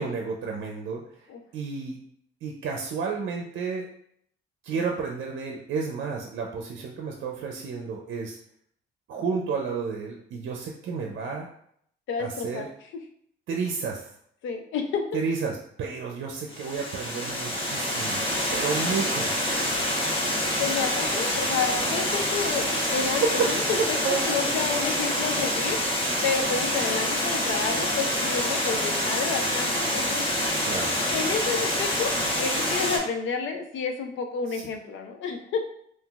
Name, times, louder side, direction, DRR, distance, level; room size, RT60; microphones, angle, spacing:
voice 1, 0.0-1.2 1.5-2.0 2.4-3.9 4.6-8.4 9.1-11.5 12.2-12.7 13.5-14.1 15.1-18.2 18.5-19.3 23.1-24.5 30.7-30.9 34.5-34.6, right 5 dB, 70° right, 1 dB, 0.5 m, -31 dB
voice 2, 12.1-12.9 14.4-15.2 20.6-25.8 26.2-30.3 31.1-35.6, left 5 dB, 75° left, 4 dB, 0.5 m, -30 dB
Water, 16.5-33.0, left 1 dB, 25° left, 1.0 m, -26 dB
3.7 x 2.5 x 2.3 m, 0.67 s
cardioid pair, 90°, 20 cm